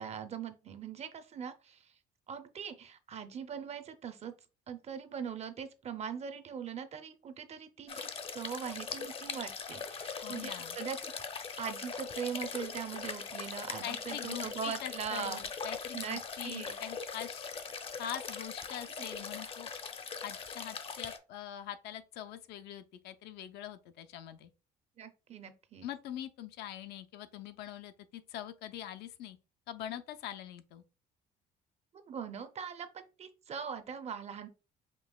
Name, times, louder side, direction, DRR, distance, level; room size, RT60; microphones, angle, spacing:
voice 1, 0.0-1.8 2.3-4.3 4.7-11.1 11.6-15.4 15.9-16.7 25.0-25.9 32.1-34.5, right 7 dB, 40° right, 0.6 m, -41 dB
sound 1, 7.9-21.2, left 5 dB, 35° left, 0.5 m, -41 dB
voice 2, 10.2-10.8 13.8-17.5 18.0-19.7 20.2-24.5 25.8-29.4 29.7-30.8, left 11 dB, 80° left, 0.5 m, -43 dB
5.2 x 2.8 x 2.3 m
cardioid pair, 110°, 17 cm